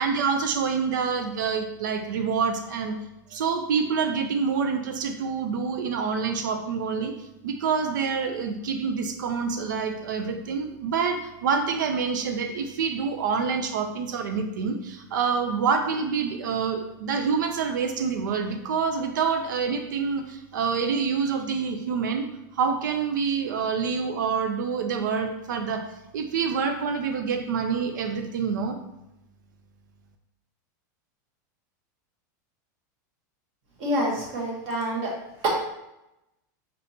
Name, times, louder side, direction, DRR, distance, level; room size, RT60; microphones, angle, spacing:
voice 1, 0.0-2.9 3.3-7.1 7.4-22.3 22.5-25.9 26.1-28.8, right 5 dB, 90° right, 6 dB, 0.6 m, -27 dB
voice 2, 33.8-35.1, equal, 40° right, -2 dB, 1.2 m, -27 dB
5.3 x 3.5 x 2.7 m, 0.89 s
supercardioid pair, 175°, 10 cm